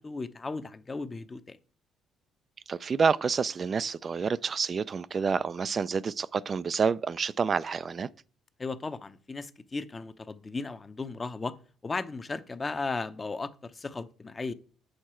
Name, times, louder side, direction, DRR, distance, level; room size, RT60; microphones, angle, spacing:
voice 1, 0.0-1.6 8.6-11.5 11.8-14.5, left 3 dB, 30° left, 0.7 m, -36 dB
voice 2, 2.7-8.1, right 5 dB, 40° right, 0.4 m, -28 dB
8.1 x 6.5 x 4.4 m
supercardioid pair, 80°, 0 cm